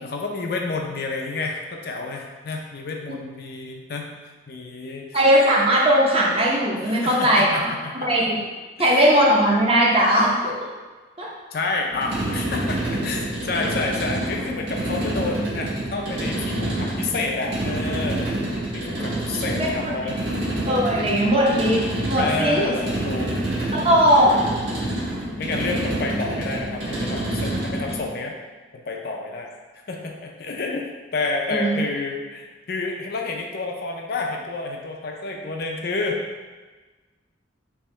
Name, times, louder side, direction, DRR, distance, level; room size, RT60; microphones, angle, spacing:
voice 1, 0.0-4.1 4.5-5.1 6.8-7.9 11.5-18.3 18.7-20.2 20.8-20.9 22.1-23.4 25.4-28.3 28.9-29.5 29.9-30.8 31.1-36.2, left 3 dB, 50° left, 1 dB, 0.5 m, -29 dB
voice 2, 5.1-7.7 8.0-8.4 8.8-10.5 11.2-11.3 19.6-19.7 20.7-21.8 22.1-22.7 23.7-24.3 31.5-31.8, equal, 30° right, -4 dB, 0.7 m, -18 dB
sound 1, 11.9-28.1, right 1 dB, 65° right, 1.3 m, -27 dB
3.5 x 2.9 x 4.2 m, 1.3 s
head